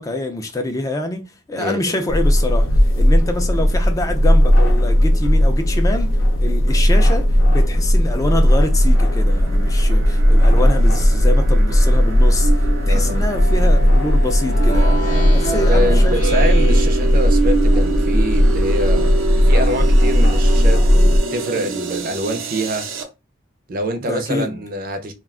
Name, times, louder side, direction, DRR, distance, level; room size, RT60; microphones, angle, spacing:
voice 1, 0.0-6.1 6.4-16.2 24.0-24.6, left 2 dB, 15° left, 0.3 m, -26 dB
voice 2, 1.6-2.1 12.9-13.2 15.5-22.9 23.7-25.1, equal, 45° right, 0.5 m, -25 dB
sound 1, 2.1-21.2, equal, 85° left, 0.6 m, -15 dB
sound 2, 8.1-23.0, right 3 dB, 90° right, 0.7 m, -27 dB
Speech synthesizer, 14.5-18.0, right 2 dB, 40° left, 0.7 m, -28 dB
2.4 x 2.2 x 3.5 m
head